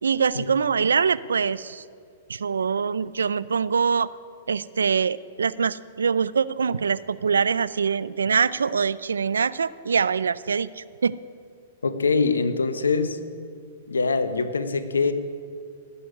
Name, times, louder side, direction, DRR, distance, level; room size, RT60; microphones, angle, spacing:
voice 1, 0.0-1.8 2.3-4.1 4.5-11.2, right 6 dB, 85° right, 18 dB, 0.5 m, -24 dB
voice 2, 11.8-13.2 13.9-15.1, left 4 dB, 90° left, 10 dB, 1.1 m, -23 dB
18.0 x 7.0 x 9.7 m, 2.2 s
hypercardioid pair, 115°, 0 cm